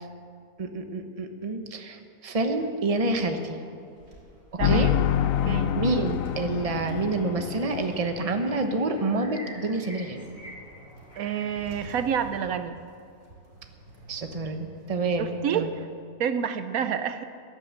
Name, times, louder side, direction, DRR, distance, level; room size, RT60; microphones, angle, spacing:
voice 1, 0.6-3.6 4.5-4.9 5.8-10.2 14.1-15.7, right 2 dB, 30° right, 6 dB, 1.0 m, -28 dB
sound 1, 3.8-15.6, right 2 dB, 60° right, 2.9 m, -49 dB
sound 2, 4.6-8.7, left 10 dB, 75° left, 1.0 m, -27 dB
voice 2, 4.6-4.9 5.4-5.8 11.2-12.8 15.2-15.9 16.2-17.2, right 8 dB, 75° right, 10 dB, 1.1 m, -28 dB
sound 3, 5.8-5.9 6.2-11.6, equal, 40° left, 4.9 m, -48 dB
17.0 x 10.0 x 7.4 m, 2.5 s
omnidirectional pair, 1.5 m